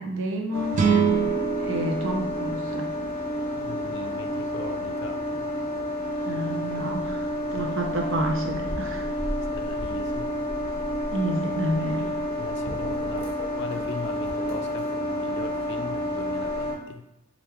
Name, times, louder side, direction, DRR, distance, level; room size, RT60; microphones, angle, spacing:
voice 1, 0.0-2.9 6.2-9.1 11.1-12.1, right 1 dB, 70° right, 1 dB, 0.7 m, -30 dB
sound 1, 0.5-16.7, left 1 dB, 25° left, 1.1 m, -30 dB
sound 2, 0.7-4.0, right 6 dB, 40° right, 0.3 m, -27 dB
voice 2, 3.5-5.5 7.6-7.7 9.3-10.3 10.6-10.8 11.7-11.9 12.3-17.0, left 4 dB, 55° left, 7 dB, 0.3 m, -39 dB
4.3 x 2.5 x 3.4 m, 0.90 s
head